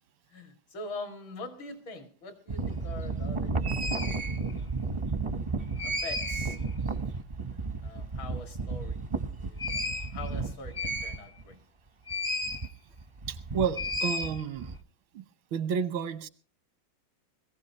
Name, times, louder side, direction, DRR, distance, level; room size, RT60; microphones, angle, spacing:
voice 1, 0.3-4.7 5.8-6.6 7.8-9.1 9.4-11.6, left 3 dB, 80° left, 3.0 m, -44 dB
sound 1, 2.5-11.5 12.1-12.7 13.0-14.8, right 2 dB, 40° right, 0.4 m, -32 dB
voice 2, 13.3-14.7 15.1-15.2 15.5-16.3, right 7 dB, 85° right, 1.7 m, -31 dB
21.5 x 15.5 x 2.9 m
omnidirectional pair, 2.1 m